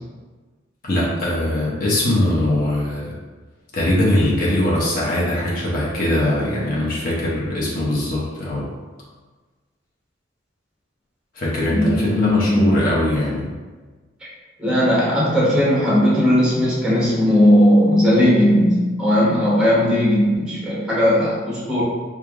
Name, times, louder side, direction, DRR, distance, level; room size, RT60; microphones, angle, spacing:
voice 1, 0.8-3.1 3.7-8.7 11.3-13.5, left 1 dB, 45° left, -6 dB, 0.8 m, -21 dB
voice 2, 11.7-12.8 14.6-21.8, equal, 5° right, -7 dB, 0.9 m, -17 dB
3.2 x 2.4 x 3.5 m, 1.3 s
head